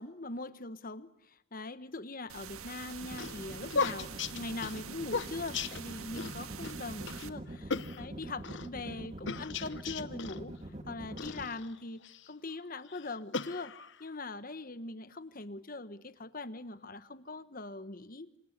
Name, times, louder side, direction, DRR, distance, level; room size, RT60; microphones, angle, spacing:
voice 1, 0.0-13.7 14.0-18.3, left 2 dB, 40° left, 13 dB, 1.2 m, -42 dB
sound 1, 2.3-7.3, right 7 dB, 90° right, 1.6 m, -46 dB
sound 2, 2.8-6.3 6.6-6.8 7.1-7.3 7.7-8.7 9.3-10.4 11.2-12.3 12.9-14.1, left 5 dB, 55° left, 1.0 m, -37 dB
sound 3, 3.0-11.4, right 1 dB, 30° right, 2.3 m, -44 dB
28.0 x 26.5 x 6.7 m, 0.81 s
head